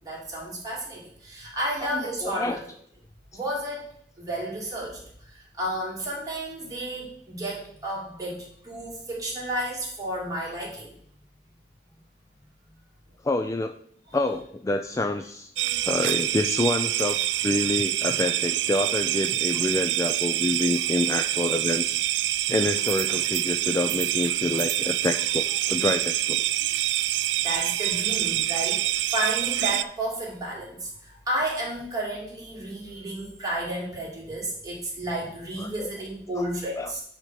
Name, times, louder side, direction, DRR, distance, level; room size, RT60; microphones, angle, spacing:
voice 1, 0.0-2.6 3.3-3.9 4.2-10.9 27.4-37.0, right 1 dB, 20° right, -4 dB, 2.7 m, -32 dB
voice 2, 1.8-2.6 13.2-13.7 14.1-22.0 22.5-26.4 35.6-35.9 36.4-36.5 36.8-36.9, left 2 dB, 20° left, 7 dB, 0.3 m, -27 dB
sound 1, 15.6-29.8, right 14 dB, 85° right, 0.3 m, -26 dB
8.9 x 3.5 x 5.8 m, 0.64 s
head